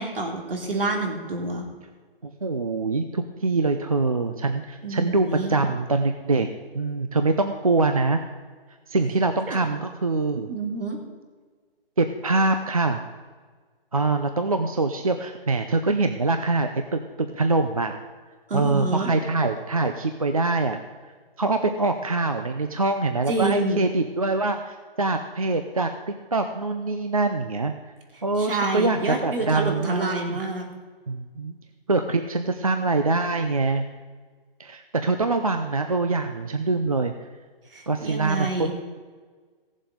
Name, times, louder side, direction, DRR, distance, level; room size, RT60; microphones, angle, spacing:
voice 1, 0.0-1.7 4.8-5.6 9.5-9.6 10.5-11.0 18.5-19.1 23.3-23.8 28.4-30.6 37.7-38.7, right 2 dB, 65° right, 2 dB, 3.1 m, -28 dB
voice 2, 2.2-6.5 6.7-8.2 8.9-10.5 12.0-13.0 13.9-17.9 18.5-20.8 21.4-25.9 26.3-27.7 28.2-30.4 31.1-31.5 31.9-33.8 34.6-37.1 37.9-38.7, right 3 dB, 35° right, 7 dB, 0.5 m, -24 dB
16.5 x 7.4 x 5.2 m, 1.5 s
hypercardioid pair, 180°, 30 cm